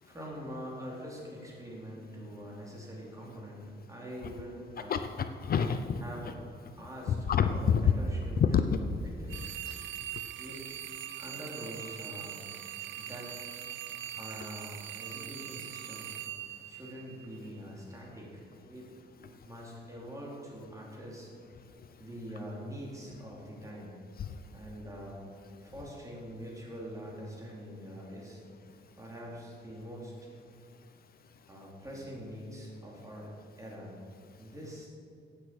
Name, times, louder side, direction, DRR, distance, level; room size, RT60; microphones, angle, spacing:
voice 1, 0.0-5.0 6.0-7.2 7.5-9.4 10.4-10.6 11.2-12.5 13.0-13.3 14.2-16.1 16.6-18.9 19.2-21.3 22.0-24.0 24.5-25.2 25.6-28.4 28.9-30.3 31.5-33.9 34.4-34.9, equal, 15° right, -4 dB, 3.8 m, -44 dB
voice 2, 4.9-6.3 7.3-7.9 8.4-8.8 9.7-9.8 24.2-24.3, left 7 dB, 50° left, 9 dB, 0.7 m, -27 dB
sound 1, 9.3-17.5, right 12 dB, 85° right, 0.6 m, -42 dB
16.0 x 8.6 x 6.2 m, 2.4 s
cardioid pair, 140°, 19 cm